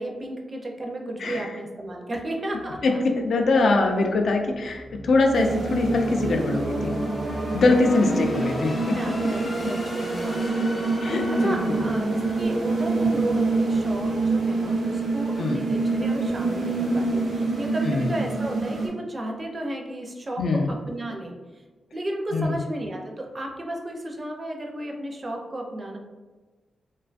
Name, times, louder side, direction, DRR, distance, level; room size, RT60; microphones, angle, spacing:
voice 1, 0.0-3.0 8.0-8.5 8.8-10.9 11.3-21.4 21.9-26.0, right 1 dB, 30° right, 1 dB, 0.4 m, -33 dB
sound 1, 2.6-13.6, equal, 45° left, 0.7 m, -36 dB
voice 2, 3.0-6.9 7.5-8.7 11.0-11.8 15.4-15.6 17.8-18.1 20.4-20.7 22.3-22.6, left 3 dB, 70° left, 3 dB, 0.3 m, -23 dB
sound 2, 5.3-18.9, right 3 dB, 80° right, 0.6 m, -26 dB
2.5 x 2.2 x 2.4 m, 1.3 s
cardioid pair, 90°, 0 cm